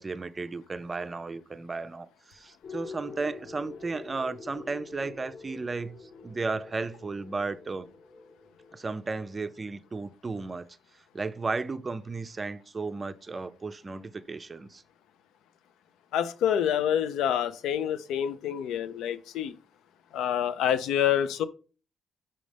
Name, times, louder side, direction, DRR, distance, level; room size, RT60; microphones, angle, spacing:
voice 1, 0.0-7.9 8.7-10.7 11.1-14.8, right 3 dB, 30° right, 0.4 m, -34 dB
sound 1, 2.6-9.9, left 4 dB, 45° left, 1.0 m, -46 dB
voice 2, 16.1-19.5 20.1-21.5, left 9 dB, 85° left, 0.4 m, -27 dB
5.5 x 5.2 x 3.3 m
cardioid pair, 90°, 0 cm